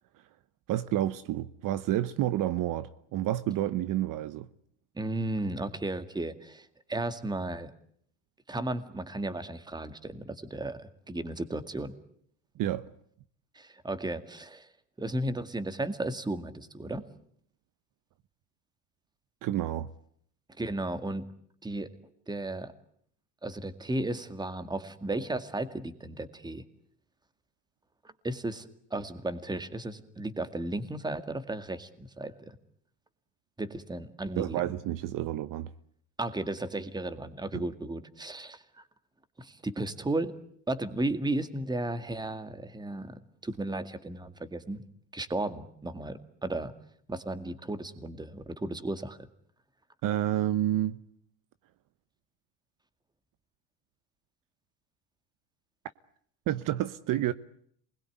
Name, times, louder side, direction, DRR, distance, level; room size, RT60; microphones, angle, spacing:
voice 1, 0.7-4.5 12.6-12.9 19.4-19.9 34.4-35.7 37.5-37.6 50.0-51.0 56.5-57.3, right 13 dB, 55° right, 1.1 m, -29 dB
voice 2, 5.0-7.7 8.5-11.9 13.6-14.7 15.0-17.0 20.6-21.3 21.6-21.9 22.3-22.7 23.4-26.6 28.2-32.6 33.6-34.7 36.2-38.6 39.4-40.3 40.7-43.1 43.4-44.8 45.1-46.7 47.1-49.2, right 2 dB, 10° right, 2.1 m, -34 dB
27.5 x 21.0 x 9.3 m
cardioid pair, 125°, 39 cm